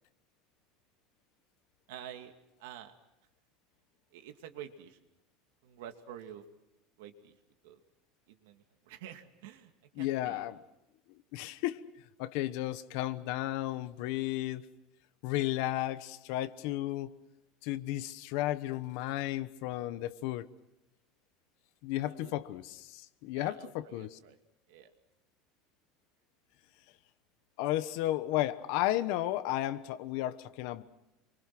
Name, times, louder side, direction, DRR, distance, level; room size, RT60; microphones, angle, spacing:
voice 1, 1.9-2.3 2.6-2.9 4.1-5.0 5.6-6.4 7.0-7.3 7.6-7.8 8.3-9.7 10.0-10.4 22.1-22.3 23.3-24.4 24.7-24.9, right 10 dB, 85° right, 6 dB, 2.4 m, -48 dB
voice 2, 9.9-10.6 11.3-11.8 12.2-14.6 15.2-17.2 17.6-20.5 21.8-24.2 27.6-30.8, left 15 dB, 55° left, 12 dB, 1.1 m, -33 dB
27.5 x 24.0 x 6.1 m, 0.92 s
cardioid pair, 175°, 0 cm